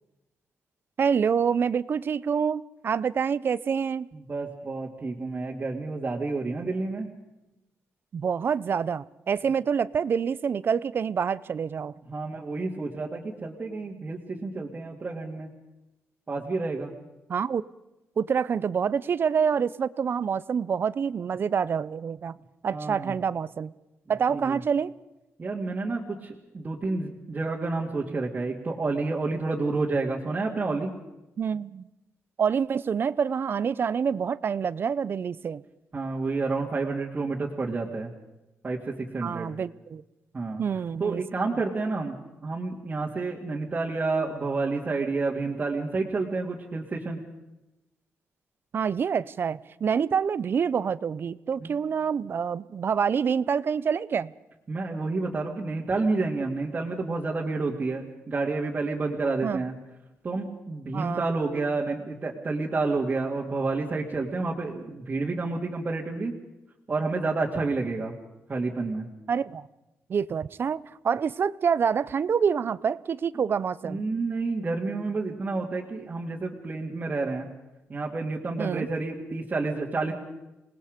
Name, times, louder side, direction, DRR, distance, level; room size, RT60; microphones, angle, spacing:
voice 1, 1.0-4.1 8.1-11.9 17.3-17.6 18.2-22.4 22.6-23.7 24.1-24.9 31.4-31.9 32.4-35.6 39.2-40.0 40.6-41.2 48.7-54.3 59.4-59.6 60.9-61.3 69.3-69.7 70.1-74.0 78.6-78.9, right 6 dB, 50° right, 18 dB, 0.6 m, -27 dB
voice 2, 4.3-7.1 12.1-15.5 16.3-16.9 22.7-23.1 24.3-24.6 25.4-30.9 35.9-38.1 38.6-39.5 40.3-40.6 41.0-42.2 42.4-47.2 51.6-51.7 54.7-59.7 60.2-66.3 66.9-68.1 68.5-69.1 73.8-77.5 77.9-80.1, right 3 dB, 30° right, -4 dB, 2.4 m, -29 dB
27.0 x 19.5 x 5.2 m, 0.97 s
cardioid pair, 115°, 5 cm